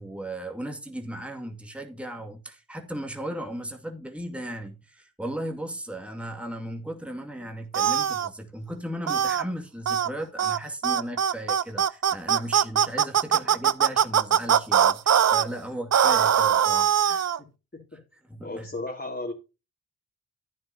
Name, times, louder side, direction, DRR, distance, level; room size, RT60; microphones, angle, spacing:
voice 1, 0.0-17.3 18.3-18.7, right 1 dB, 5° right, 2.2 m, -36 dB
sound 1, 7.7-8.3 9.1-9.4 9.9-10.1 10.4-10.6 10.8-15.4 15.9-17.4, right 8 dB, 45° right, 0.6 m, -21 dB
voice 2, 17.4-18.0 18.4-19.3, left 2 dB, 25° left, 2.8 m, -35 dB
11.5 x 9.6 x 2.8 m
supercardioid pair, 40°, 39 cm